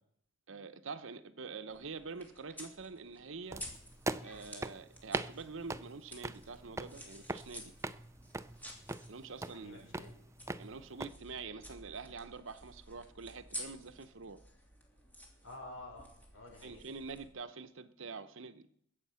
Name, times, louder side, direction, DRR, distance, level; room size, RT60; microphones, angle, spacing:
voice 1, 0.5-3.6 4.2-7.7 9.1-9.9 10.6-14.4 16.6-18.7, right 4 dB, 65° right, 0.8 m, -46 dB
sound 1, 1.7-17.3, equal, 10° left, 3.0 m, -52 dB
sound 2, 3.5-11.1, right 2 dB, 15° right, 0.5 m, -42 dB
voice 2, 9.4-10.2 15.4-16.9, left 2 dB, 85° left, 6.0 m, -50 dB
21.5 x 8.4 x 5.7 m
head